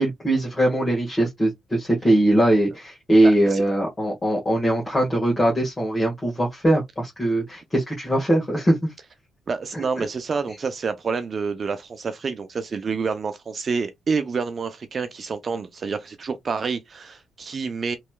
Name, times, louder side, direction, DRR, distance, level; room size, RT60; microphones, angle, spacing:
voice 1, 0.0-8.9 9.7-10.0, right 1 dB, 20° left, 1.5 m, -21 dB
voice 2, 3.2-3.6 9.5-18.0, right 5 dB, 40° right, 0.5 m, -28 dB
3.1 x 3.0 x 2.2 m
cardioid pair, 90°, 0 cm